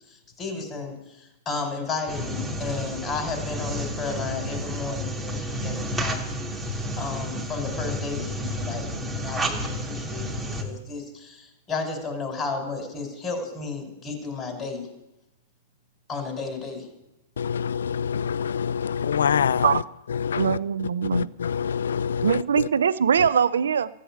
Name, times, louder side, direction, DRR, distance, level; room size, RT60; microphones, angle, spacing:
voice 1, 0.4-1.0 1.4-14.9 16.1-16.9, left 4 dB, 25° left, 5.0 m, -33 dB
sound 1, 2.1-10.6, equal, 5° right, 2.6 m, -31 dB
voice 2, 17.4-19.8 20.1-20.6 21.0-22.7 23.2-23.3, left 7 dB, 80° left, 0.5 m, -26 dB
voice 3, 20.3-21.3 22.2-23.9, right 7 dB, 80° right, 0.6 m, -22 dB
14.5 x 8.4 x 8.7 m
hypercardioid pair, 115°, 0 cm